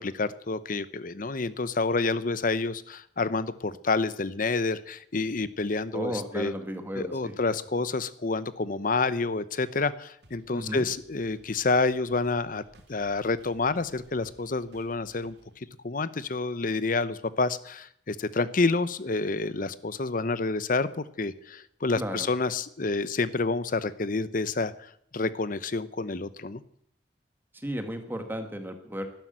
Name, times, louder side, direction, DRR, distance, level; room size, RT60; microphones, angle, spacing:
voice 1, 0.0-6.5 7.0-12.6 12.9-26.6, left 3 dB, 50° left, 15 dB, 0.8 m, -28 dB
voice 2, 5.9-7.3 10.5-10.9 21.9-22.3 27.5-29.1, equal, 10° right, 6 dB, 1.7 m, -34 dB
sound 1, 10.2-15.6, right 1 dB, 65° right, 2.8 m, -58 dB
12.5 x 12.0 x 9.2 m, 0.68 s
head